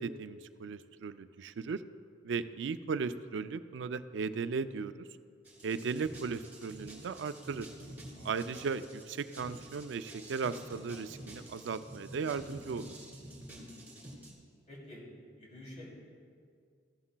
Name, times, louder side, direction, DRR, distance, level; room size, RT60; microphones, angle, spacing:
voice 1, 0.0-1.8 2.2-4.9 5.6-7.7 8.2-12.9, right 5 dB, 85° right, 12 dB, 0.4 m, -36 dB
sound 1, 5.4-14.3, right 1 dB, 10° right, 2.1 m, -49 dB
voice 2, 14.7-15.0 15.4-15.9, left 1 dB, 40° left, -4 dB, 2.9 m, -49 dB
14.5 x 11.0 x 2.2 m, 2.2 s
head